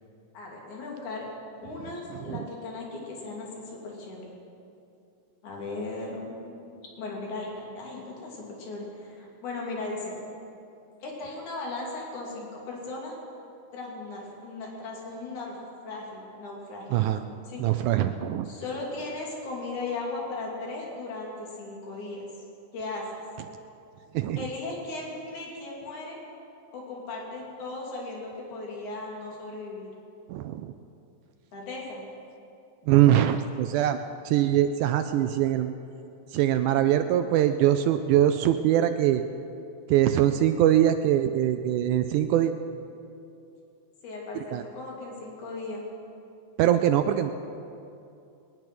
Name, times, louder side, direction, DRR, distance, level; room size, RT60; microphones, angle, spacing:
voice 1, 0.3-1.2 1.6-4.2 5.4-10.2 11.0-13.2 13.7-15.6 15.8-17.7 18.5-22.3 22.7-23.1 24.4-26.2 26.7-29.9 31.5-32.1 44.0-45.8, left 3 dB, 60° left, -3 dB, 4.0 m, -37 dB
voice 2, 16.9-17.2 17.6-18.5 24.1-24.4 30.3-30.7 32.9-34.0 34.3-35.7 36.3-39.2 39.9-42.5 44.5-44.6 46.6-47.3, right 11 dB, 80° right, 8 dB, 1.8 m, -22 dB
21.0 x 10.5 x 6.1 m, 2.7 s
omnidirectional pair, 3.9 m